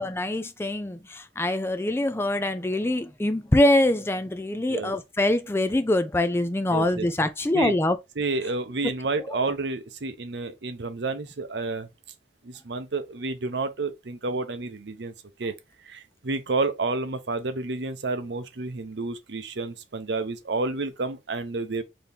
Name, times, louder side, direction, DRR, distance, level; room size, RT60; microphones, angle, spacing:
voice 1, 0.0-8.0 9.3-9.4, left 1 dB, 15° left, 0.4 m, -24 dB
voice 2, 6.7-7.1 7.5-7.8 8.2-11.9 12.4-15.1 15.4-15.5 15.8-21.8, right 3 dB, 75° right, 0.7 m, -30 dB
4.1 x 2.8 x 3.4 m
head